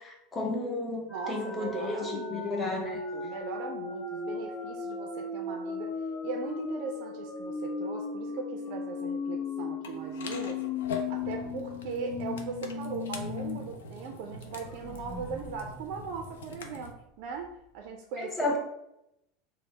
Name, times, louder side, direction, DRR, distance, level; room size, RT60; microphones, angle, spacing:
voice 1, 0.0-3.0 18.2-18.6, left 2 dB, 20° left, 0 dB, 0.7 m, -33 dB
sound 1, 1.1-13.6 13.9-14.0 14.4-17.1, left 4 dB, 55° left, 0.9 m, -37 dB
voice 2, 1.1-2.7 3.1-5.9 6.2-10.6 11.1-18.6, right 5 dB, 65° right, 3 dB, 0.4 m, -39 dB
sound 2, 9.8-16.9, left 3 dB, 85° left, 0.4 m, -42 dB
3.2 x 2.0 x 3.9 m, 0.85 s
hypercardioid pair, 100°, 0 cm